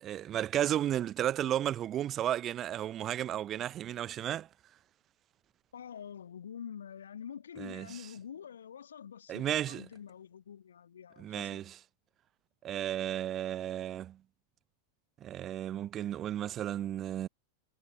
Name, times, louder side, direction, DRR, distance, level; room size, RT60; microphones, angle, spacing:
voice 1, 0.0-4.5 7.6-8.0 9.3-9.8 11.2-11.8 12.6-14.2 15.2-17.3, right 11 dB, 30° right, 0.6 m, -33 dB
voice 2, 5.7-11.7, left 8 dB, 65° left, 1.7 m, -46 dB
figure-of-eight pair, 90°, 0 cm